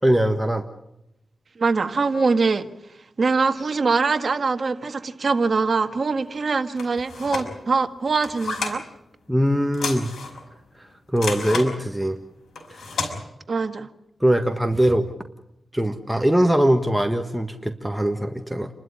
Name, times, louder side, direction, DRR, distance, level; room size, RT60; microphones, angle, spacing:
voice 1, 0.0-0.6 9.3-10.1 11.1-12.2 12.7-13.0 14.2-15.1 15.7-18.7, right 1 dB, 5° right, 5 dB, 1.5 m, -21 dB
voice 2, 1.6-2.7 3.2-8.8 13.5-13.9, right 4 dB, 55° right, 8 dB, 1.6 m, -23 dB
sound 1, 6.8-7.5 8.1-8.8 9.7-10.4 11.2-11.7 12.6-13.1, left 4 dB, 80° left, 5.5 m, -30 dB
29.5 x 12.5 x 9.8 m, 0.87 s
cardioid pair, 75°, 0 cm